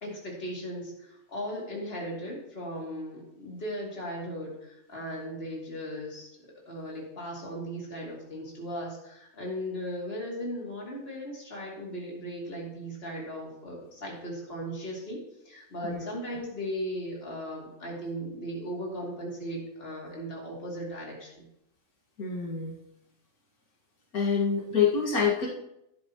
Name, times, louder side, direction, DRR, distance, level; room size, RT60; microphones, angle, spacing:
voice 1, 0.0-6.3 6.7-21.4, equal, 40° left, -3 dB, 2.8 m, -37 dB
voice 2, 22.2-22.7 24.1-25.5, left 6 dB, 85° left, -3 dB, 2.2 m, -26 dB
12.5 x 9.9 x 3.0 m, 0.81 s
omnidirectional pair, 1.5 m